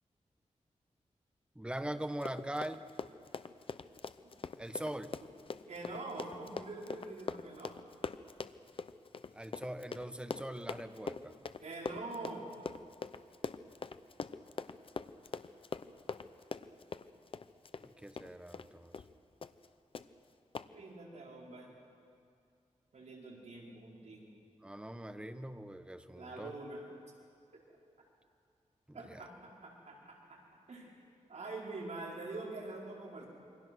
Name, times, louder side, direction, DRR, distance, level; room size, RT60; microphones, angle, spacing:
voice 1, 1.5-2.8 4.6-5.1 9.3-11.3 17.8-18.9 24.6-26.5 28.9-29.3, right 1 dB, 10° right, 9 dB, 1.1 m, -42 dB
Run, 2.1-18.7 18.9-19.1 19.4-19.7 19.9-20.1 20.5-20.7, left 5 dB, 45° left, 0.7 m, -43 dB
voice 2, 5.7-7.8 11.6-12.4 20.7-21.7 22.9-24.3 26.1-26.8 27.5-27.6 28.9-30.4 30.7-30.9 31.3-33.3, right 2 dB, 70° right, -3 dB, 4.9 m, -45 dB
27.5 x 24.5 x 6.3 m, 2.4 s
wide cardioid pair, 145°, 12 cm